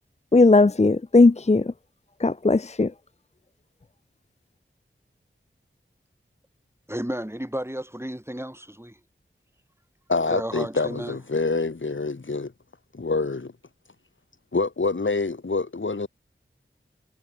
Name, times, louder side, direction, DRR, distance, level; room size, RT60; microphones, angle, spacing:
voice 1, 0.3-1.7 2.2-2.9, left 3 dB, 30° left, 0.6 m, -17 dB
voice 2, 6.9-9.0 10.3-11.2, equal, 10° right, 6.7 m, -33 dB
voice 3, 10.1-12.5 12.9-13.5 14.5-16.1, left 3 dB, 65° left, 1.7 m, -26 dB
wide cardioid pair, 50°, 21 cm